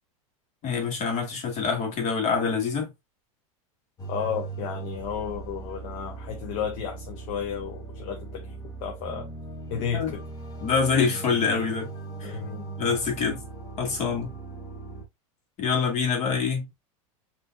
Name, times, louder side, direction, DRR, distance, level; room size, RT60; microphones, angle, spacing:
voice 1, 0.6-2.9 9.9-10.1 10.6-11.9 12.2-12.4 12.8-13.4 13.8-14.3 15.6-16.7, left 5 dB, 40° left, 2.1 m, -25 dB
sound 1, 4.0-15.1, right 3 dB, 20° left, 1.7 m, -39 dB
voice 2, 4.1-8.5 8.8-9.3 9.7-10.2 12.2-12.7, left 7 dB, 55° left, 1.0 m, -33 dB
5.8 x 3.3 x 2.4 m
hypercardioid pair, 115°, 18 cm